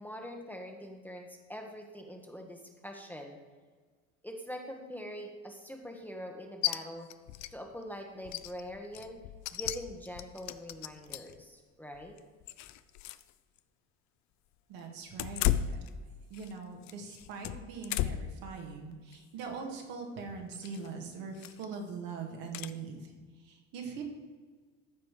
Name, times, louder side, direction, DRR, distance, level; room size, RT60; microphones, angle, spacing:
voice 1, 0.0-3.4 4.2-7.1 7.5-9.2 9.5-12.2, equal, 5° left, 2 dB, 1.4 m, -44 dB
sound 1, 6.6-6.8 7.1-7.5 7.8-7.9 8.2-11.4 11.9-13.3 13.6-13.7 15.1-16.5 16.8-18.4 18.8-19.2 20.5-20.9 21.4-21.7 22.5-22.7, left 13 dB, 45° left, 0.6 m, -35 dB
voice 2, 14.7-15.8 16.3-23.1 23.4-24.0, right 5 dB, 65° right, 1 dB, 2.2 m, -42 dB
14.0 x 5.0 x 4.9 m, 1.5 s
hypercardioid pair, 70°, 38 cm